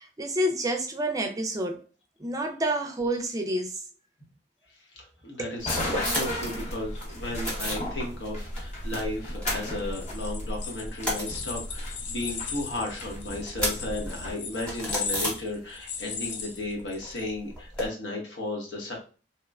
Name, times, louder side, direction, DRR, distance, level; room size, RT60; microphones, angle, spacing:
voice 1, 0.0-1.8 2.2-3.8 5.4-5.5, right 1 dB, 20° right, 0.4 m, -29 dB
voice 2, 4.9-19.0, left 2 dB, 85° left, 1.0 m, -34 dB
sound 1, 5.6-14.3, left 1 dB, 40° left, 0.7 m, -35 dB
sound 2, 5.8-6.5 6.8-7.9 8.2-9.0 9.3-10.3 10.6-16.0 16.2-17.9, equal, 5° left, 0.9 m, -34 dB
sound 3, 9.8-17.2, left 6 dB, 70° left, 0.4 m, -38 dB
3.0 x 2.1 x 2.3 m
head